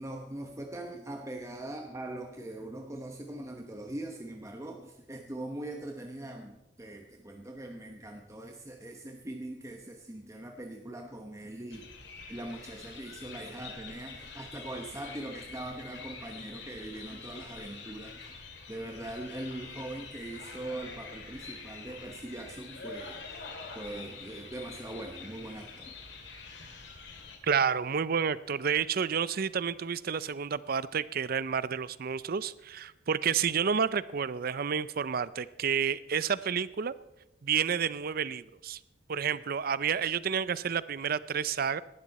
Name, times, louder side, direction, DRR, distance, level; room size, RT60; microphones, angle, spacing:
voice 1, 0.0-11.9 12.3-18.4 18.7-23.4 23.7-26.0, right 1 dB, 15° right, 2 dB, 1.0 m, -41 dB
sound 1, 11.7-27.4, left 4 dB, 70° left, 2.5 m, -46 dB
voice 2, 27.4-36.9 37.4-38.8 39.1-41.8, right 7 dB, 55° right, 17 dB, 0.5 m, -30 dB
18.0 x 12.5 x 4.2 m, 0.92 s
head